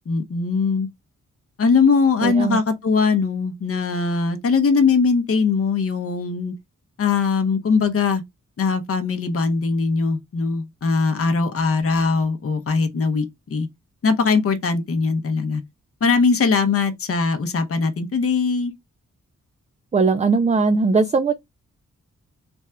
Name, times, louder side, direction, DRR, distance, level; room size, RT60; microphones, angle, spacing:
voice 1, 0.1-0.9 1.6-6.5 7.0-8.2 8.6-13.7 14.0-15.6 16.0-18.7, left 4 dB, 45° left, 0.7 m, -20 dB
voice 2, 2.2-2.6 19.9-21.3, right 4 dB, 25° right, 0.4 m, -19 dB
3.4 x 2.3 x 4.3 m
cardioid pair, 65°, 32 cm